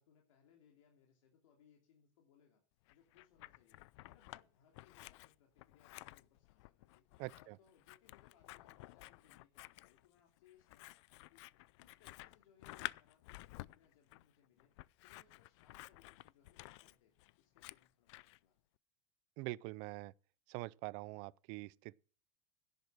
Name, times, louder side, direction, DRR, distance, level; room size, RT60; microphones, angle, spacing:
voice 1, 0.0-2.6 2.9-7.0 7.3-11.4 11.8-14.7 15.0-18.6, left 8 dB, 85° left, 3.0 m, -70 dB
Scissors, 2.9-4.4 4.7-18.4, left 20 dB, 60° left, 0.4 m, -52 dB
voice 2, 7.2-7.6 19.4-20.1 20.5-21.9, right 22 dB, 45° right, 0.4 m, -44 dB
10.5 x 8.1 x 6.1 m
supercardioid pair, 155°, 16 cm